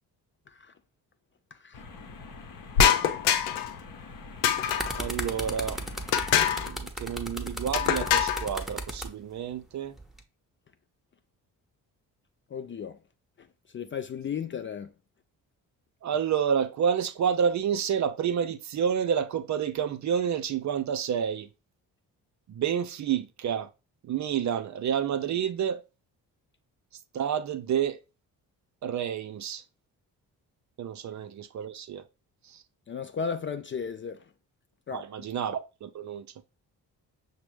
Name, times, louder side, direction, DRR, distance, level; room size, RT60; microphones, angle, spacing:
sound 1, 1.7-6.7, left 4 dB, 45° left, 0.9 m, -45 dB
sound 2, 2.7-3.7 4.4-5.1 6.1-6.7 7.7-8.5, left 9 dB, 75° left, 0.6 m, -24 dB
sound 3, 4.4-9.1 10.0-10.2, right 1 dB, ahead, 0.8 m, -35 dB
voice 1, 5.0-5.8 6.6-9.9 16.0-21.5 22.5-23.7 24.0-25.8 27.1-28.0 28.8-29.6 30.8-32.0 32.4-32.6 34.9-36.3, right 8 dB, 40° right, 0.4 m, -29 dB
voice 2, 12.5-13.0 13.7-14.9 32.9-34.2 34.9-35.0, left 6 dB, 30° left, 0.4 m, -34 dB
5.9 x 2.0 x 3.2 m
hypercardioid pair, 45°, 46 cm